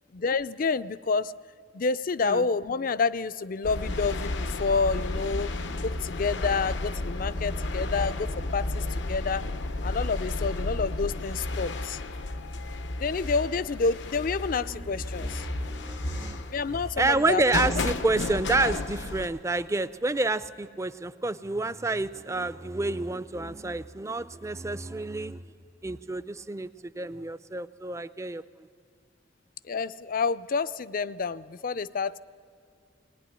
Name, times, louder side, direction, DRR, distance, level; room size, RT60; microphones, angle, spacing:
voice 1, 0.1-1.3 1.7-5.5 5.8-9.5 9.8-12.0 13.0-15.5 16.5-17.6 29.7-32.2, left 4 dB, 50° left, 16 dB, 0.5 m, -29 dB
sound 1, 3.6-19.3, left 2 dB, 85° left, 0.9 m, -32 dB
voice 2, 5.3-5.8 14.6-25.4 25.8-28.4, right 2 dB, 15° right, 14 dB, 0.5 m, -29 dB
19.5 x 19.0 x 9.9 m, 2.2 s
head